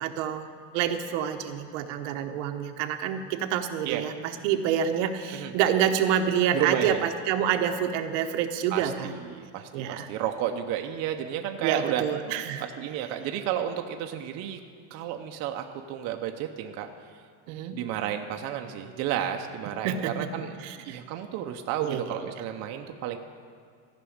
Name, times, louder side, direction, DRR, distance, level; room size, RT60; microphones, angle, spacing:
voice 1, 0.0-9.1 9.7-10.1 11.6-12.6 17.5-17.8 19.8-20.3 20.6-21.0 21.8-22.3, right 9 dB, 80° right, 6 dB, 1.0 m, -28 dB
voice 2, 6.5-7.0 8.7-12.0 12.6-14.6 14.9-16.9 17.7-20.6 20.8-23.2, right 10 dB, 45° right, 4 dB, 0.7 m, -32 dB
14.5 x 6.1 x 8.6 m, 2.2 s
cardioid pair, 170°, 36 cm